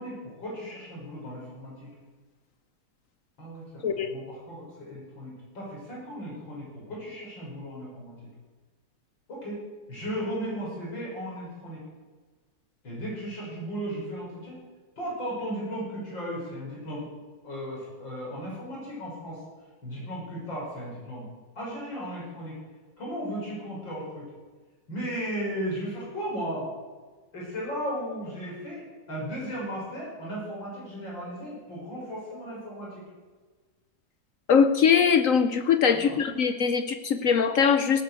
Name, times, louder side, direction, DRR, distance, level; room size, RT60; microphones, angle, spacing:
voice 1, 0.0-1.9 3.4-8.3 9.3-9.6 9.9-11.8 12.8-14.6 15.0-17.1 17.4-19.4 19.8-21.2 21.6-22.6 23.0-24.3 24.9-26.7 27.3-33.0 35.9-36.2, equal, 90° left, -5 dB, 6.9 m, -36 dB
voice 2, 34.5-38.0, left 6 dB, 60° left, 9 dB, 0.9 m, -22 dB
17.5 x 9.4 x 6.4 m, 1.4 s
omnidirectional pair, 2.0 m